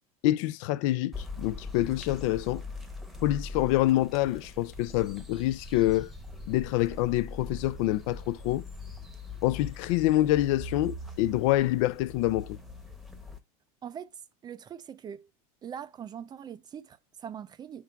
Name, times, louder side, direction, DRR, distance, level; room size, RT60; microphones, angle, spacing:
voice 1, 0.2-2.6 3.2-6.1 6.5-8.6 9.4-12.6, left 15 dB, 65° left, 0.4 m, -26 dB
sound 1, 1.1-13.4, left 2 dB, ahead, 1.0 m, -41 dB
voice 2, 13.8-15.3 15.6-17.8, right 8 dB, 25° right, 0.4 m, -42 dB
4.6 x 3.7 x 5.6 m
supercardioid pair, 125°, 18 cm